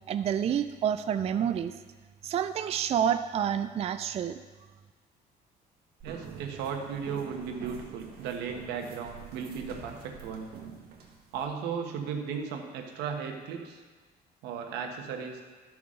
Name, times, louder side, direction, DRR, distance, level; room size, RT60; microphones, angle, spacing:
voice 1, 0.1-1.7 2.2-4.4, right 9 dB, 40° right, 10 dB, 0.3 m, -28 dB
sound 1, 6.0-11.4, right 6 dB, 65° right, 1.6 m, -46 dB
voice 2, 6.0-10.5 11.3-13.8 14.4-15.4, right 6 dB, 90° right, 3 dB, 1.2 m, -36 dB
13.5 x 6.0 x 3.7 m, 1.4 s
cardioid pair, 110°, 17 cm